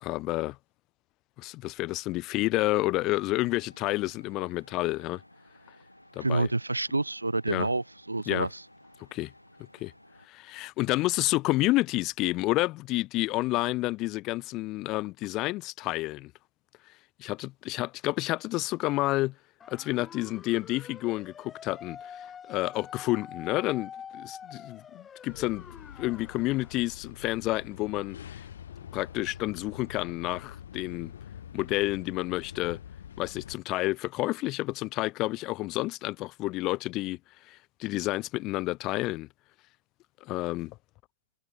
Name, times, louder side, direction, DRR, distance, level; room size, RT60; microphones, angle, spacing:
voice 1, 0.0-0.6 1.4-5.2 6.2-6.5 7.5-7.7 8.3-8.5 9.1-9.3 9.7-9.9 10.3-16.3 17.2-19.3 19.7-25.6 26.0-28.2 28.9-31.1 31.5-32.8 33.2-37.2 37.5-39.3 40.2-40.7, left 19 dB, 35° left, 0.7 m, -30 dB
sound 1, 3.1-10.3, left 1 dB, 90° left, 4.3 m, -56 dB
voice 2, 6.2-8.5, right 2 dB, 85° right, 0.4 m, -28 dB
sound 2, 19.6-26.8, left 7 dB, 20° left, 3.2 m, -46 dB
sound 3, 25.3-33.6, left 9 dB, 60° left, 5.0 m, -45 dB
figure-of-eight pair, 100°, 0 cm